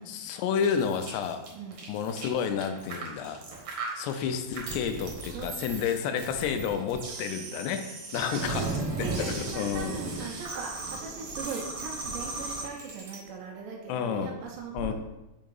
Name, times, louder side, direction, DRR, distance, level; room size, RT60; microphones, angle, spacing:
voice 1, 0.1-1.4 1.9-3.4 4.0-10.0 13.9-14.3 14.7-14.9, left 7 dB, 80° left, 7 dB, 2.5 m, -30 dB
sound 1, 0.6-13.2, right 3 dB, 65° right, 1.7 m, -36 dB
voice 2, 1.5-2.0 5.3-5.9 8.3-8.7 9.0-14.9, right 4 dB, 85° right, -1 dB, 3.0 m, -40 dB
7.2 x 2.8 x 5.3 m, 0.98 s
omnidirectional pair, 4.8 m